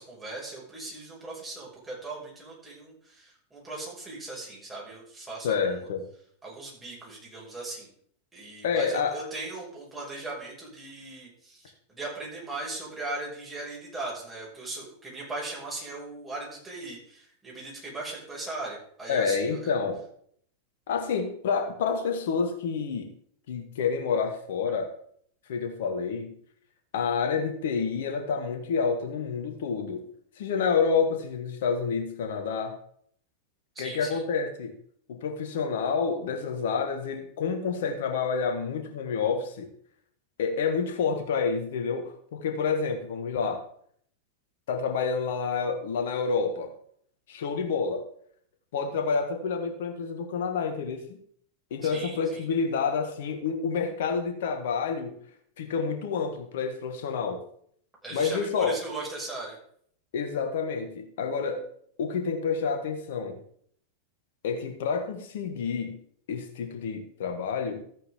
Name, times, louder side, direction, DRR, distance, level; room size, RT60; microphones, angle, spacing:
voice 1, 0.0-5.6 6.4-7.9 8.3-19.6 33.7-34.2 51.8-52.4 58.0-59.6, right 2 dB, 15° right, -4 dB, 6.0 m, -39 dB
voice 2, 5.4-6.0 8.6-9.3 19.1-20.0 20.9-23.1 23.5-24.9 25.5-26.3 26.9-30.1 30.4-32.8 33.8-34.7 35.1-39.7 40.4-43.6 44.7-46.7 47.3-48.0 48.7-51.2 51.7-55.2 55.6-57.4 58.1-58.8 60.1-61.6 62.0-63.4 64.4-66.0 66.3-67.8, left 5 dB, 55° left, 5 dB, 1.9 m, -28 dB
14.0 x 8.9 x 3.8 m, 0.63 s
figure-of-eight pair, 90°, 0 cm